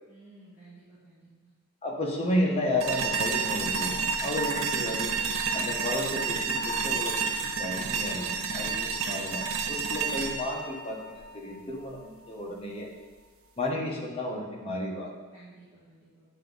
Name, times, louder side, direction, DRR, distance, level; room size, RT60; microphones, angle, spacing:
voice 1, 0.1-1.5 15.3-16.2, right 2 dB, 10° right, -13 dB, 1.7 m, -54 dB
voice 2, 1.8-5.2 5.5-12.9 13.6-15.1, left 1 dB, 30° left, -1 dB, 1.0 m, -32 dB
sound 1, 2.8-11.8, right 5 dB, 75° right, 0.6 m, -30 dB
8.8 x 3.5 x 3.9 m, 1.3 s
head